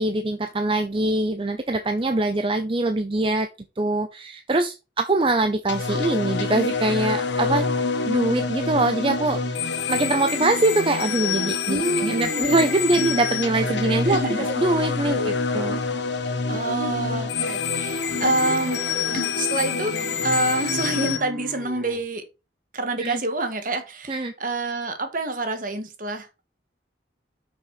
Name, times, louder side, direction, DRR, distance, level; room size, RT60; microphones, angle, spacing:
voice 1, 0.0-3.5 3.8-7.7 8.1-15.8 23.0-23.2 24.1-24.3, right 2 dB, 30° right, 0.7 m, -23 dB
sound 1, 5.7-21.2, left 4 dB, 75° left, 1.4 m, -26 dB
voice 2, 11.6-12.6 14.1-14.5 16.5-18.8 19.1-22.2 22.7-26.5, right 2 dB, 50° right, 1.8 m, -27 dB
sound 2, 18.1-22.1, equal, ahead, 0.9 m, -41 dB
6.3 x 6.3 x 5.7 m
head